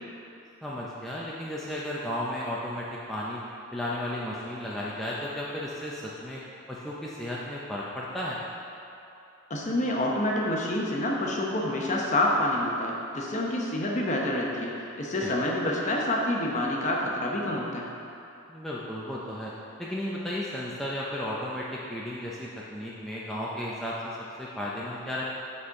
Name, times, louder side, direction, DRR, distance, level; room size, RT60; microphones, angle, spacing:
voice 1, 0.6-3.4 3.7-6.4 6.7-8.4 15.2-15.3 18.5-19.5 19.8-25.2, left 1 dB, ahead, -7 dB, 0.5 m, -34 dB
voice 2, 9.5-17.8, left 1 dB, 35° left, -2 dB, 0.8 m, -27 dB
7.6 x 4.3 x 4.7 m, 2.8 s
head